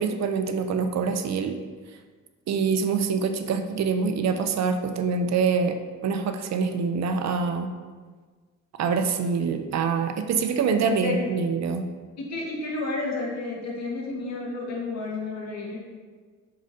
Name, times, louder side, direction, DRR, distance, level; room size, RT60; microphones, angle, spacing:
voice 1, 0.0-1.5 2.5-5.8 6.0-7.7 8.8-11.8, right 5 dB, 60° right, 7 dB, 0.7 m, -25 dB
voice 2, 10.8-11.4 12.2-15.8, left 3 dB, 60° left, -2 dB, 1.9 m, -31 dB
7.9 x 6.3 x 2.8 m, 1.5 s
cardioid pair, 90°, 30 cm